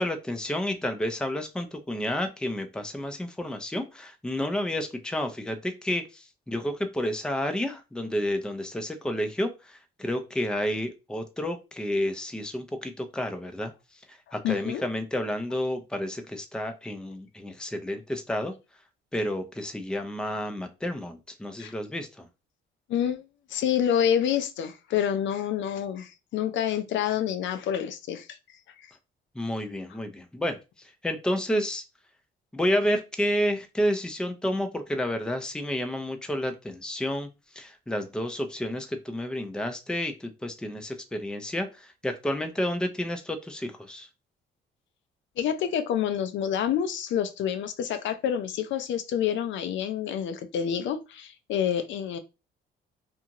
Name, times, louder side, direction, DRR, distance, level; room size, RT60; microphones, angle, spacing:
voice 1, 0.0-13.7 14.1-18.5 19.1-22.3 29.4-30.6 31.0-31.8 32.5-37.3 37.6-44.1, equal, 5° left, 0.5 m, -30 dB
voice 2, 14.4-14.8 21.6-21.7 22.9-23.2 23.5-28.3 45.4-52.2, left 9 dB, 70° left, 0.5 m, -28 dB
2.6 x 2.4 x 2.9 m
cardioid pair, 90°, 20 cm